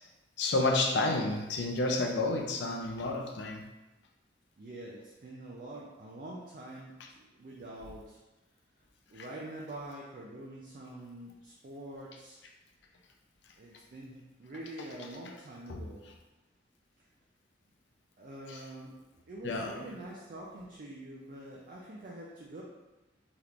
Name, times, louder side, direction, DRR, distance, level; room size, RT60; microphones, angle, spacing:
voice 1, 0.4-3.6 15.7-15.8 18.5-18.6 19.4-19.7, left 2 dB, 65° left, 1 dB, 0.5 m, -30 dB
voice 2, 4.6-8.2 9.1-12.4 13.6-16.1 18.2-18.9 19.2-22.6, right 1 dB, 45° right, -4 dB, 0.4 m, -45 dB
3.5 x 2.9 x 2.4 m, 1.0 s
head